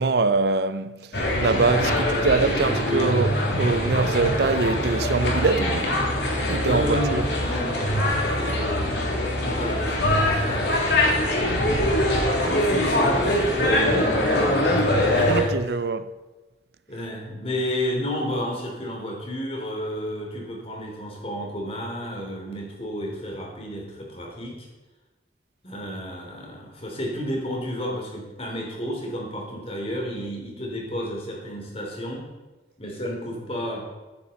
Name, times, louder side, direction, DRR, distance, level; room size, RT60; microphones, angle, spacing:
voice 1, 0.0-6.0 6.5-7.3 10.5-10.6 15.3-16.1, right 4 dB, 60° right, 0.5 m, -24 dB
sound 1, 1.1-15.4, left 1 dB, 75° left, 3.0 m, -23 dB
voice 2, 1.9-3.2 6.6-10.0 10.3-11.3 12.4-14.7 15.0-15.5 16.9-24.7 25.6-32.3 32.8-33.8, equal, 35° left, 3.2 m, -32 dB
14.5 x 9.5 x 4.2 m
head